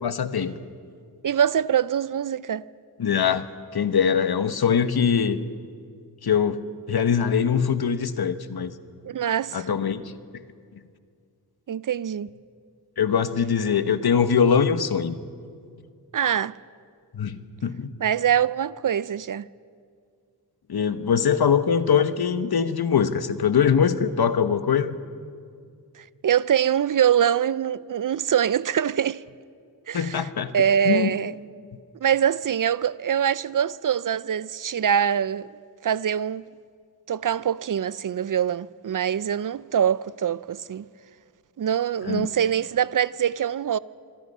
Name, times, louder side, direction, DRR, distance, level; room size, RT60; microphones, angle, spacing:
voice 1, 0.0-0.6 3.0-3.5 3.7-5.4 6.2-6.6 6.9-8.7 9.5-10.0 13.0-15.2 17.1-18.0 20.7-25.0 29.9-30.5 30.8-31.1 42.1-42.3, left 7 dB, 65° left, 1.1 m, -22 dB
voice 2, 1.2-2.6 9.0-9.7 11.7-12.3 16.1-16.6 18.0-19.5 26.0-29.2 29.9-30.3 30.5-31.3 32.0-35.5 35.8-36.4 37.1-40.8 41.6-43.8, right 9 dB, 50° right, 0.5 m, -24 dB
26.0 x 21.5 x 5.5 m
wide cardioid pair, 85°, 41 cm